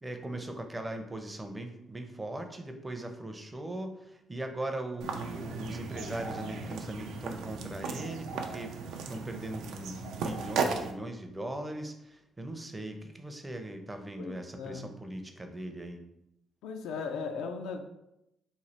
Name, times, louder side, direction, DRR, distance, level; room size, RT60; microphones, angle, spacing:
voice 1, 0.0-16.0, right 1 dB, 15° right, 5 dB, 0.5 m, -39 dB
sound 1, 5.0-10.9, right 4 dB, 85° right, 0.4 m, -36 dB
voice 2, 14.2-14.9 16.6-17.8, left 5 dB, 90° left, 5 dB, 0.3 m, -37 dB
3.1 x 2.4 x 4.1 m, 0.85 s
cardioid pair, 90°, 0 cm